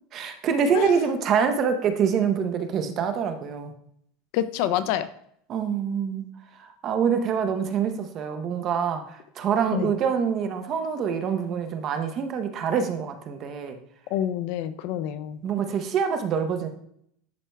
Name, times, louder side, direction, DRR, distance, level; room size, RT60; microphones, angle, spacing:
voice 1, 0.1-3.7 5.5-6.2 6.8-13.8 15.4-16.7, right 7 dB, 35° right, 7 dB, 0.7 m, -25 dB
voice 2, 4.3-5.1 9.7-9.9 14.1-15.4, left 11 dB, 55° left, 13 dB, 0.4 m, -27 dB
11.0 x 4.4 x 2.2 m, 0.69 s
supercardioid pair, 160°, 0 cm